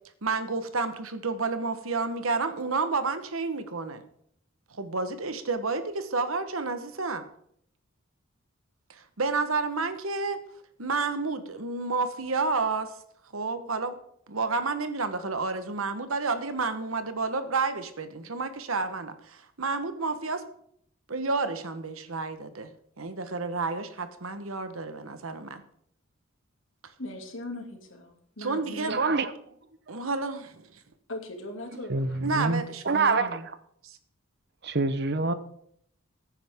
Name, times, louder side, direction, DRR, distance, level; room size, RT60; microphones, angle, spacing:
voice 1, 0.2-4.0 4.7-7.2 8.9-10.4 10.8-12.9 13.3-14.0 14.3-20.4 21.1-22.7 23.0-25.6 28.4-29.0 29.9-30.7 32.2-33.4 33.8-34.0, right 4 dB, 80° right, 10 dB, 1.2 m, -30 dB
voice 2, 27.0-29.0 31.1-32.3, left 1 dB, 65° left, 3 dB, 2.5 m, -39 dB
voice 3, 28.9-29.3 31.9-33.4 34.6-35.3, right 3 dB, 55° right, 12 dB, 0.9 m, -26 dB
15.0 x 9.8 x 3.7 m, 0.69 s
head